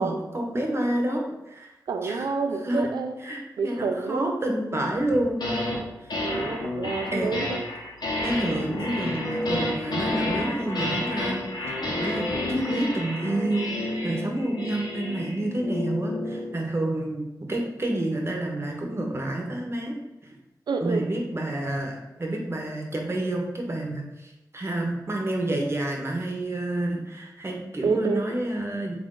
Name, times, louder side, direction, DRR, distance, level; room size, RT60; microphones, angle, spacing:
voice 1, 0.0-1.7 2.0-2.3 2.6-2.9 3.2-5.4 6.0-6.1 7.1-7.4 8.2-11.4 11.9-19.9 20.8-28.9, right 1 dB, 35° right, 1 dB, 0.8 m, -29 dB
voice 2, 1.9-3.2 3.6-4.3 6.2-7.5 20.7-21.0 27.8-28.2, right 4 dB, 80° right, 6 dB, 0.4 m, -28 dB
sound 1, 5.1-5.8 6.1-16.5, left 1 dB, 70° left, 0.8 m, -30 dB
3.3 x 2.5 x 3.7 m, 0.98 s
cardioid pair, 60°, 7 cm